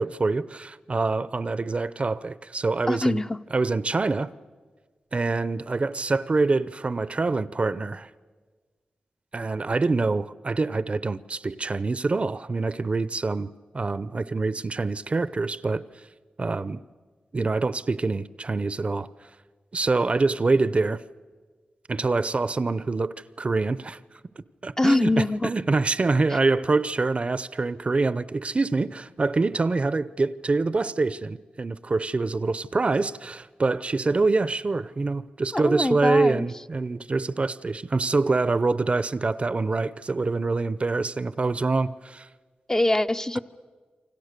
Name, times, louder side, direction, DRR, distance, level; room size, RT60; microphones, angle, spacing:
voice 1, 0.0-3.2 3.5-4.3 5.1-8.1 9.3-15.8 16.4-16.8 17.3-19.1 19.7-21.0 21.9-24.0 24.6-42.3, right 3 dB, 45° right, 0.7 m, -25 dB
voice 2, 2.9-3.4 24.8-25.5 35.5-36.5 42.7-43.4, left 1 dB, 20° left, 0.7 m, -23 dB
28.0 x 25.0 x 6.7 m
cardioid pair, 70°, 3 cm